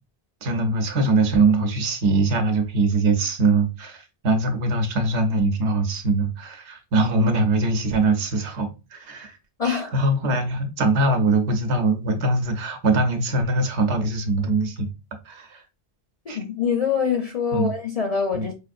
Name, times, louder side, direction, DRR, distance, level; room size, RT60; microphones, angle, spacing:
voice 1, 0.4-9.4 9.6-14.9 15.2-15.6 16.3-16.4 17.5-17.7 18.3-18.5, right 3 dB, 80° right, 1.1 m, -22 dB
voice 2, 9.6-9.9 16.3-18.5, left 6 dB, 45° left, 0.5 m, -24 dB
4.9 x 2.5 x 2.4 m
omnidirectional pair, 1.1 m